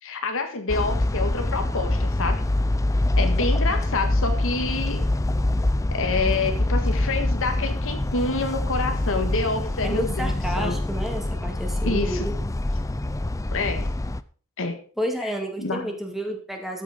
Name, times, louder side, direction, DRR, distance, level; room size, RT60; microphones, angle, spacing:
voice 1, 0.0-2.4 3.2-5.0 5.9-10.7 11.8-12.2 13.5-13.9 14.6-14.8 15.2-15.3 15.6-15.9, left 3 dB, 65° left, 6 dB, 1.7 m, -27 dB
sound 1, 0.7-14.2, left 1 dB, 15° left, 0.5 m, -25 dB
voice 2, 9.8-12.3 15.0-16.8, equal, ahead, 2 dB, 2.4 m, -30 dB
13.0 x 7.3 x 5.2 m, 0.43 s
head